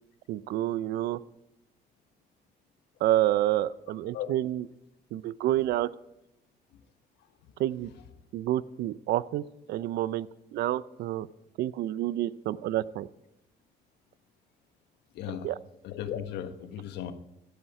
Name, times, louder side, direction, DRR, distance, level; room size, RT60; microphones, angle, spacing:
voice 1, 0.3-1.2 3.0-4.6 5.1-5.9 7.6-7.9 8.3-9.4 9.7-10.3 10.5-11.3 11.6-13.1 15.4-15.6, right 13 dB, 75° right, 17 dB, 0.6 m, -28 dB
voice 2, 15.1-15.5 15.8-17.1, left 10 dB, 80° left, 9 dB, 1.3 m, -36 dB
16.0 x 10.0 x 4.8 m, 0.88 s
cardioid pair, 110°, 17 cm